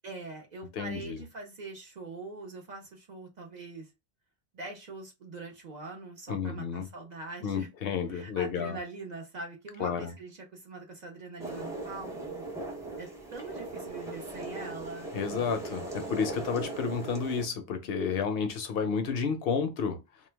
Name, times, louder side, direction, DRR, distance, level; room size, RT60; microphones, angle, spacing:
voice 1, 0.0-3.9 4.5-7.7 8.1-12.4 13.0-15.1, right 3 dB, 50° right, 0.6 m, -43 dB
voice 2, 0.8-1.2 6.3-6.9 7.4-8.8 9.8-10.1 15.1-20.0, left 6 dB, 70° left, 0.7 m, -31 dB
sound 1, 11.4-17.5, right 2 dB, 5° right, 0.5 m, -39 dB
2.2 x 2.2 x 3.2 m
omnidirectional pair, 1.1 m